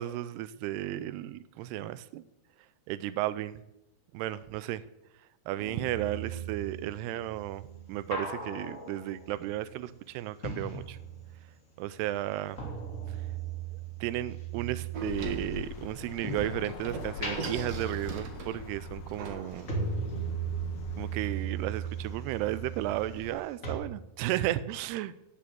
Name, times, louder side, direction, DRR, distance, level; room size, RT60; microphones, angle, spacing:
voice 1, 0.0-2.2 2.9-3.6 4.1-4.8 5.5-11.0 11.8-12.7 13.1-13.2 14.0-19.7 21.0-25.2, right 14 dB, 85° right, 16 dB, 2.7 m, -34 dB
sound 1, 5.6-11.6 11.8-16.7 17.1-23.4 23.6-23.7, right 5 dB, 20° left, 3.1 m, -38 dB
sound 2, 14.9-23.4, left 9 dB, 85° left, 2.9 m, -45 dB
Door, 14.9-21.6, right 4 dB, 50° right, 2.2 m, -43 dB
17.0 x 7.2 x 7.7 m, 0.87 s
omnidirectional pair, 4.6 m